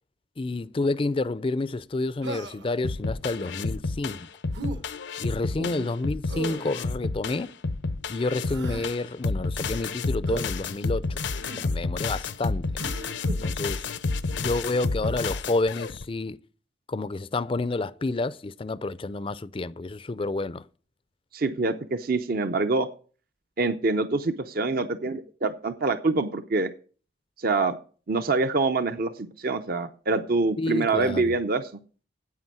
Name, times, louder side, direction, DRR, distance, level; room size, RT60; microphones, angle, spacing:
voice 1, 0.4-4.3 5.2-7.5 8.1-11.2 11.6-12.7 13.4-13.9 14.4-16.4 16.9-20.6 30.6-31.3, left 2 dB, 30° left, 0.4 m, -29 dB
Human voice, 2.2-2.8 4.5-4.8 6.3-6.7 8.3-8.9 10.3-10.5 11.4-11.7 12.8-13.4 15.0-15.3, right 2 dB, 70° right, 1.5 m, -37 dB
sound 1, 2.8-16.0, left 3 dB, 70° left, 0.6 m, -30 dB
voice 2, 21.3-22.9 23.6-26.7 27.4-27.8 28.1-31.7, right 3 dB, 50° right, 0.6 m, -25 dB
9.5 x 8.4 x 6.1 m
head